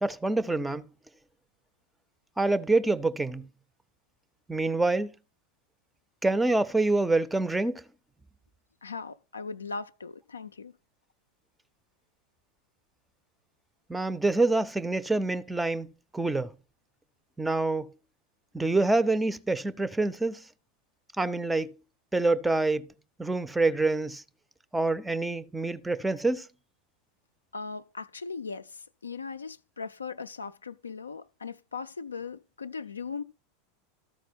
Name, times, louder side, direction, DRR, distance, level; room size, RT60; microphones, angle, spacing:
voice 1, 0.0-0.9 2.4-3.4 4.5-5.1 6.2-7.8 13.9-16.5 17.4-17.9 18.5-20.4 21.2-21.7 22.1-22.9 23.2-24.2 24.7-26.5, right 2 dB, 5° right, 0.5 m, -26 dB
voice 2, 8.8-10.7 27.5-33.2, left 4 dB, 80° left, 0.3 m, -39 dB
13.0 x 4.5 x 4.4 m
figure-of-eight pair, 85°, 0 cm